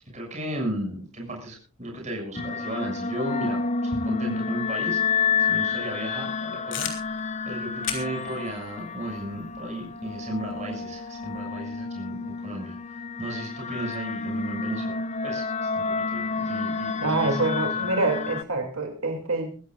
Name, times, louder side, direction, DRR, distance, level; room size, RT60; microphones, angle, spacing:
voice 1, 0.1-7.2 7.4-17.4 17.7-17.9, right 1 dB, 30° right, 0 dB, 6.6 m, -35 dB
sound 1, 2.4-18.4, left 5 dB, 30° left, 0.6 m, -29 dB
sound 2, 6.7-11.5, left 8 dB, 55° left, 3.4 m, -39 dB
voice 2, 17.0-19.5, right 2 dB, 70° right, 3 dB, 2.7 m, -26 dB
23.5 x 15.5 x 2.5 m, 0.37 s
head